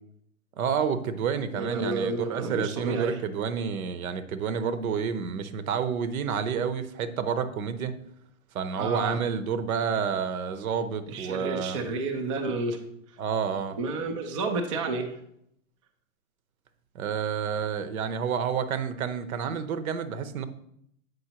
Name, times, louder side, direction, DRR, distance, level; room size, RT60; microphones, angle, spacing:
voice 1, 0.6-7.9 8.5-11.8 13.2-13.8 16.9-20.4, right 7 dB, 75° right, 11 dB, 0.9 m, -29 dB
voice 2, 1.5-3.2 8.8-9.2 11.1-12.8 13.8-15.1, right 3 dB, 25° right, 3 dB, 0.3 m, -30 dB
7.8 x 5.3 x 2.9 m, 0.72 s
hypercardioid pair, 155°, 42 cm